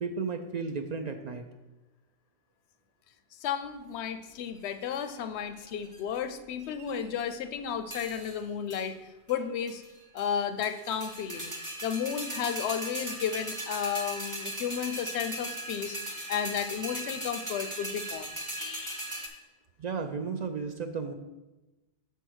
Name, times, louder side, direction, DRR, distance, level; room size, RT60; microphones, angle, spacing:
voice 1, 0.0-1.4 19.8-21.1, right 5 dB, 55° right, 6 dB, 0.5 m, -34 dB
voice 2, 3.4-8.9 9.3-9.8 10.1-11.5 11.8-16.0 16.3-19.1, left 8 dB, 85° left, 10 dB, 0.9 m, -33 dB
sound 1, 4.6-5.1 5.7-6.2 6.6-7.3 7.9-8.4 8.7-8.9 9.3-9.4 9.7-10.3 10.6-19.3, right 1 dB, 20° right, 0.9 m, -38 dB
5.6 x 4.5 x 6.3 m, 1.1 s
omnidirectional pair, 1.1 m